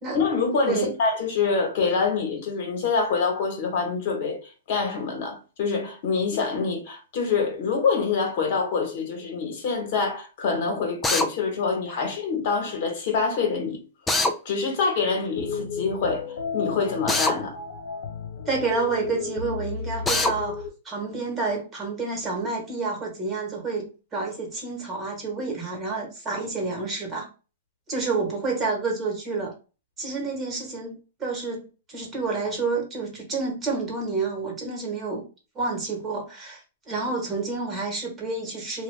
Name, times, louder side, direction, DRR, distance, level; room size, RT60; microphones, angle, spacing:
voice 1, 0.1-13.8 14.4-16.3 16.5-17.6, left 5 dB, 55° left, 1.2 m, -26 dB
Drill, 11.0-11.3 14.1-14.3 17.1-17.4 20.1-20.3, left 2 dB, 10° left, 0.4 m, -22 dB
sound 1, 15.4-20.7, left 4 dB, 70° left, 0.6 m, -34 dB
voice 2, 18.5-27.3 27.9-29.5 30.0-35.2 35.5-38.8, right 3 dB, 20° right, 1.3 m, -29 dB
2.7 x 2.3 x 3.3 m
hypercardioid pair, 140°, 0 cm